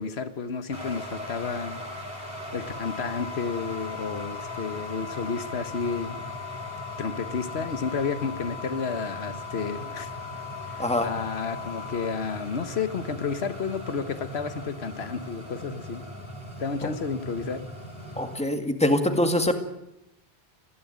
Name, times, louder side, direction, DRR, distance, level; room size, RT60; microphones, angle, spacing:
voice 1, 0.0-1.8 2.5-6.2 7.0-10.1 10.7-16.0 16.6-17.6, left 5 dB, 80° left, 11 dB, 1.5 m, -31 dB
sound 1, 0.7-18.4, equal, 25° left, 3.9 m, -39 dB
sound 2, 2.7-12.1, left 12 dB, 35° right, 2.9 m, -41 dB
voice 2, 10.8-11.1 16.8-16.9 18.2-19.5, left 1 dB, 5° left, 6 dB, 2.0 m, -24 dB
19.0 x 15.5 x 9.4 m, 0.87 s
omnidirectional pair, 1.1 m